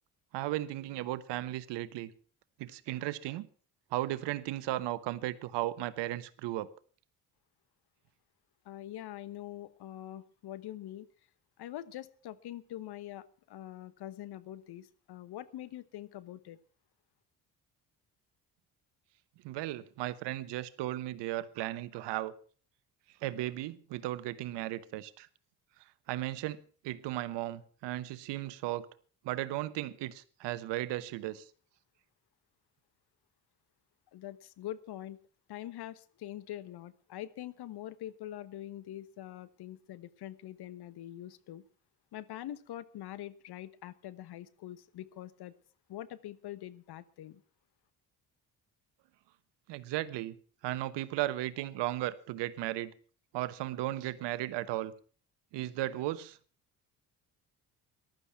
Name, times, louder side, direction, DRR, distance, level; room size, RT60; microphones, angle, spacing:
voice 1, 0.3-2.1 2.6-3.5 3.9-6.7 19.4-22.3 23.2-25.3 26.1-28.9 29.2-31.5 49.7-50.4 50.6-52.9 53.3-54.9 55.5-56.4, right 15 dB, 70° right, 1.1 m, -35 dB
voice 2, 8.6-11.1 11.6-16.6 34.1-35.2 35.5-41.6 42.1-45.5 45.9-47.4, left 13 dB, 60° left, 1.2 m, -44 dB
15.0 x 12.0 x 5.9 m
hypercardioid pair, 50°, 45 cm